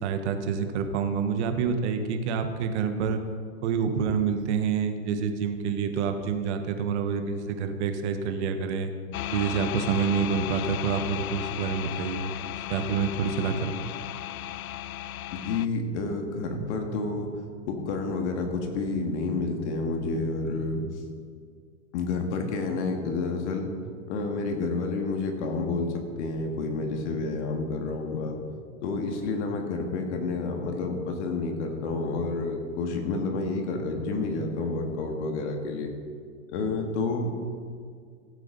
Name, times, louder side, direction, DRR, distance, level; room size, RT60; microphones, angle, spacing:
voice 1, 0.0-3.2 3.6-8.9 9.3-12.3 12.7-13.7, right 6 dB, 55° right, 7 dB, 1.3 m, -27 dB
sound 1, 9.1-15.7, left 12 dB, 85° left, 0.5 m, -35 dB
voice 2, 15.3-17.3 17.7-20.8 21.9-23.7 24.1-25.9 26.2-28.4 28.8-35.9 36.5-37.3, left 3 dB, 55° left, 3 dB, 2.0 m, -29 dB
15.5 x 8.3 x 4.0 m, 2.1 s
hypercardioid pair, 125°, 42 cm